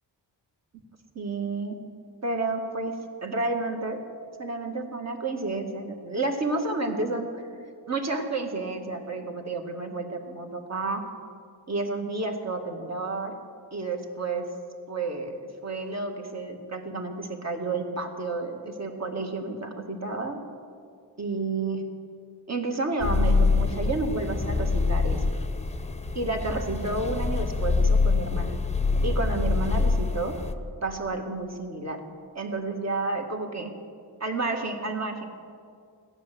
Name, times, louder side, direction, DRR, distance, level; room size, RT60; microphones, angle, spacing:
voice 1, 1.2-1.8 2.2-3.0 3.2-4.0 4.4-7.3 7.9-11.0 11.7-13.4 13.7-14.5 14.9-20.4 21.2-21.9 22.5-25.2 26.1-28.5 29.0-30.3 30.8-32.0 32.3-33.7 34.2-35.2, right 3 dB, 40° right, 3 dB, 1.8 m, -30 dB
sound 1, 23.0-30.5, left 4 dB, 15° left, 0.8 m, -25 dB
16.0 x 10.0 x 7.5 m, 2.3 s
wide cardioid pair, 105°, 42 cm